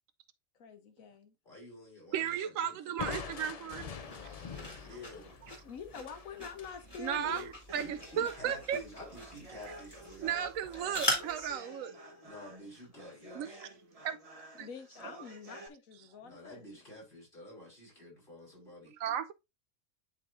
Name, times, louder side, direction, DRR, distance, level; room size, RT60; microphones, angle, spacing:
voice 1, 0.6-1.3 5.6-7.6 14.6-16.6, left 6 dB, 80° left, 1.3 m, -46 dB
voice 2, 1.4-2.8 4.7-5.4 7.2-10.4 12.2-13.6 16.2-18.9, left 1 dB, 35° left, 4.2 m, -50 dB
voice 3, 2.1-3.9 4.2-4.9 7.0-8.8 10.2-11.9 13.4-13.7 14.0-14.2 14.6-14.7 19.0-19.3, right 9 dB, 75° right, 0.9 m, -35 dB
Crushing, 3.0-6.8, left 6 dB, 65° left, 0.3 m, -44 dB
sound 1, 4.0-11.5, left 1 dB, 15° left, 2.5 m, -41 dB
sound 2, 7.7-15.7, right 1 dB, 30° right, 1.1 m, -51 dB
11.0 x 4.0 x 2.5 m
omnidirectional pair, 1.4 m